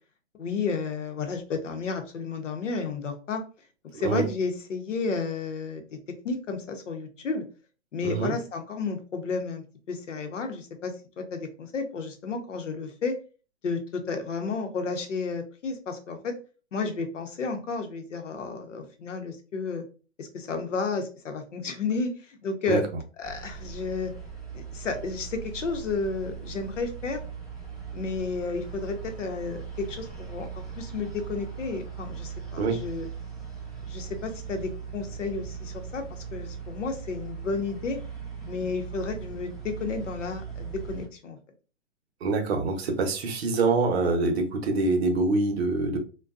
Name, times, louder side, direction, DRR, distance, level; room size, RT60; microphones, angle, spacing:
voice 1, 0.3-3.4 3.9-6.0 6.2-7.4 7.9-13.2 13.6-16.3 16.7-19.9 20.2-22.8 23.2-24.1 24.5-27.2 27.9-30.5 30.8-33.1 33.9-38.0 38.5-41.4, left 4 dB, 75° left, 6 dB, 0.8 m, -32 dB
voice 2, 3.9-4.3 8.0-8.3 22.7-22.8 32.6-32.8 42.2-46.0, right 3 dB, 55° right, 4 dB, 0.8 m, -25 dB
sound 1, 23.2-41.1, right 6 dB, ahead, 0.5 m, -39 dB
2.6 x 2.2 x 2.3 m, 0.35 s
hypercardioid pair, 130°, 37 cm